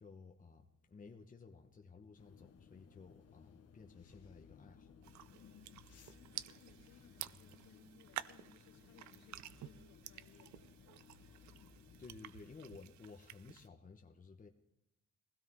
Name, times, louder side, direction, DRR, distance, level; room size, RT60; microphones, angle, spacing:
voice 1, 0.0-4.9 11.5-14.5, left 4 dB, 25° left, 3 dB, 1.1 m, -56 dB
sound 1, 2.2-12.1, left 7 dB, 55° left, 1.3 m, -61 dB
sound 2, 5.0-13.7, right 13 dB, 70° right, 0.5 m, -51 dB
voice 2, 5.9-10.7, left 5 dB, 75° left, -1 dB, 2.9 m, -64 dB
19.5 x 16.0 x 3.7 m, 0.86 s
cardioid pair, 90°, 30 cm